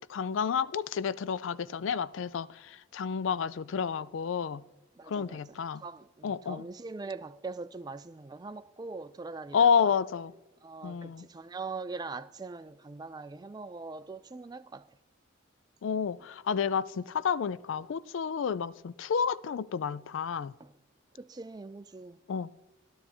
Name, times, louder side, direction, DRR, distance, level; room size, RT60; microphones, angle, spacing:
voice 1, 0.1-4.6 5.1-5.8 6.2-6.6 9.5-10.3 10.8-11.3 15.8-20.5 22.3-22.5, left 6 dB, 70° left, 0.4 m, -30 dB
voice 2, 5.0-9.9 10.6-14.9 20.6-20.7 21.1-22.2, right 3 dB, 20° right, 0.3 m, -42 dB
12.0 x 12.0 x 4.4 m
head